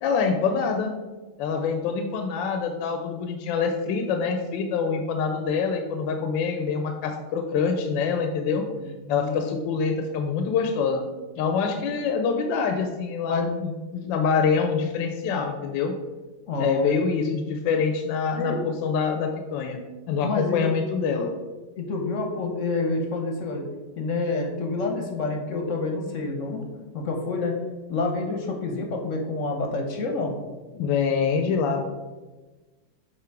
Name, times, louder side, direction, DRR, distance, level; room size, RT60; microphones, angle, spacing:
voice 1, 0.0-0.9 1.4-8.6 9.1-11.0 11.4-15.9 16.6-19.8 20.1-21.3 30.7-31.9, left 5 dB, 85° left, 5 dB, 1.3 m, -25 dB
voice 2, 9.0-9.5 11.7-11.9 13.3-13.5 16.5-16.9 18.3-18.6 20.2-20.6 21.8-23.6 24.0-26.7 26.9-27.5 27.9-30.3, left 3 dB, 55° left, 2 dB, 0.9 m, -28 dB
7.5 x 3.0 x 4.6 m, 1.2 s
omnidirectional pair, 2.0 m